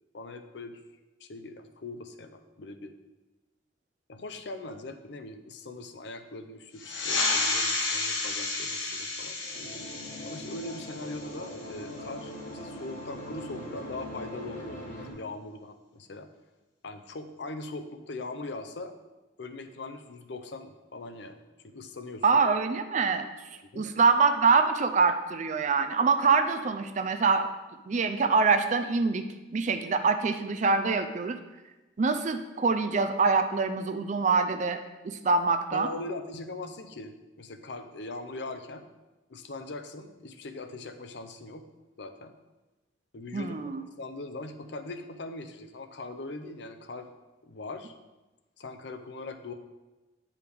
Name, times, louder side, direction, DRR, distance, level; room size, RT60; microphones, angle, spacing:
voice 1, 0.1-0.8 1.2-2.9 4.1-9.4 10.3-16.3 16.8-18.9 19.4-22.2 23.7-24.0 35.7-38.9 39.3-41.7 42.0-42.3 43.1-43.7 44.0-47.1 47.4-47.9 48.6-49.5, left 2 dB, 60° left, 7 dB, 0.6 m, -41 dB
sound 1, 6.8-11.9, left 3 dB, 85° left, 1.1 m, -31 dB
sound 2, 9.4-15.1, equal, 40° left, 1.3 m, -41 dB
voice 2, 22.2-23.3 23.7-27.5 27.9-29.3 29.5-31.4 32.0-34.8 35.0-35.9 43.3-43.8, right 4 dB, 40° right, 8 dB, 0.4 m, -25 dB
9.2 x 4.9 x 3.4 m, 1.1 s
head